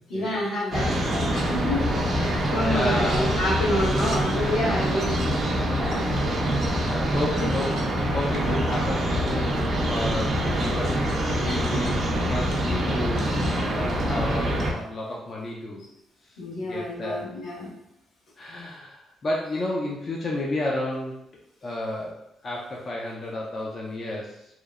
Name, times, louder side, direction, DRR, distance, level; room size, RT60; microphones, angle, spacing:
voice 1, 0.1-1.9 2.1-5.3 5.8-6.1 7.2-7.3 8.4-8.6 10.3-10.5 16.4-17.7, left 1 dB, 80° left, -7 dB, 1.2 m, -28 dB
sound 1, 0.7-14.7, equal, 55° right, 0.6 m, -25 dB
voice 2, 2.2-3.4 6.8-7.7 8.1-13.4 13.6-15.9 16.7-17.3 18.4-21.1 21.6-24.5, left 1 dB, 40° left, -3 dB, 0.4 m, -32 dB
2.9 x 2.0 x 2.3 m, 0.82 s
cardioid pair, 90°, 0 cm